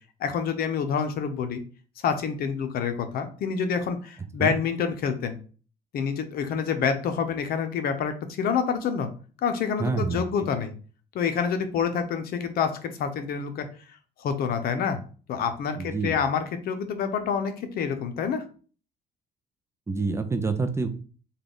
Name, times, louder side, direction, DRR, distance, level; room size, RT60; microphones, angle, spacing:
voice 1, 0.2-1.6 2.0-5.4 5.9-9.1 9.4-10.7 11.1-13.7 14.2-15.0 15.3-18.4, left 6 dB, 65° left, 8 dB, 0.6 m, -27 dB
voice 2, 9.8-10.2 15.8-16.2 19.9-20.9, right 4 dB, 15° right, 7 dB, 0.5 m, -27 dB
3.8 x 2.3 x 3.5 m, 0.39 s
cardioid pair, 110°, 17 cm